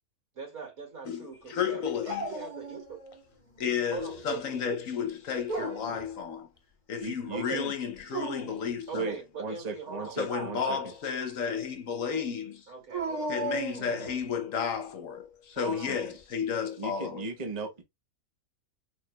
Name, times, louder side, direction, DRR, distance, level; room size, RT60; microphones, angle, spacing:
voice 1, 0.3-3.0 3.9-4.8 7.3-7.7 8.9-10.9 12.7-13.6 13.8-14.2 15.6-16.1, right 5 dB, 65° right, 2.9 m, -41 dB
voice 2, 1.1-2.3 3.6-6.5 6.9-9.1 10.2-12.7 13.3-17.3, left 7 dB, 65° left, 1.2 m, -32 dB
Dog, 2.0-3.2 3.6-4.3 5.3-6.0 8.0-8.6 12.9-14.2, right 2 dB, 85° right, 2.9 m, -36 dB
voice 3, 7.0-7.7 8.9-10.9 15.6-16.0 16.8-17.8, right 3 dB, 30° right, 1.1 m, -37 dB
4.7 x 4.6 x 2.3 m
omnidirectional pair, 1.6 m